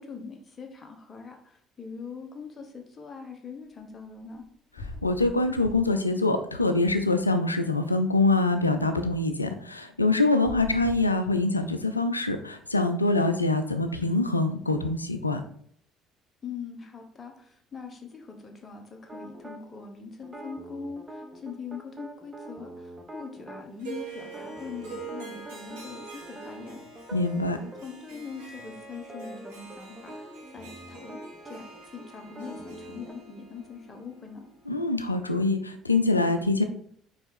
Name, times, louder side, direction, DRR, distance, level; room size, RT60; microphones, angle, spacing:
voice 1, 0.0-4.4 16.4-26.8 27.5-34.4, left 5 dB, 30° left, 4 dB, 1.4 m, -42 dB
sound 1, 4.3-4.4 4.7-6.1 6.4-7.5 10.3-11.8, left 3 dB, 50° left, 2.1 m, -43 dB
voice 2, 5.0-15.4 27.1-27.6 34.7-36.6, left 2 dB, 90° left, 8 dB, 0.5 m, -24 dB
sound 2, 19.1-19.6 20.2-23.6 24.2-27.8 28.1-28.3 28.6-33.1, right 1 dB, 20° right, 1.1 m, -44 dB
Harp, 23.8-35.1, right 4 dB, 70° right, 1.8 m, -45 dB
5.4 x 4.8 x 4.5 m, 0.64 s
figure-of-eight pair, 55°, 0 cm